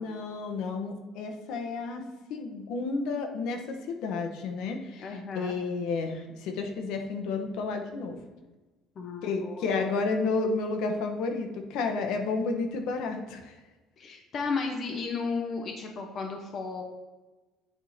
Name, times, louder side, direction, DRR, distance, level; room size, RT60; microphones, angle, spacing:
voice 1, 0.0-8.2 9.2-13.6, left 4 dB, 70° left, 5 dB, 1.0 m, -31 dB
voice 2, 5.0-5.6 9.0-9.9 14.0-16.8, left 4 dB, 35° left, 2 dB, 0.8 m, -34 dB
9.2 x 3.6 x 4.2 m, 1.2 s
cardioid pair, 175°, 0 cm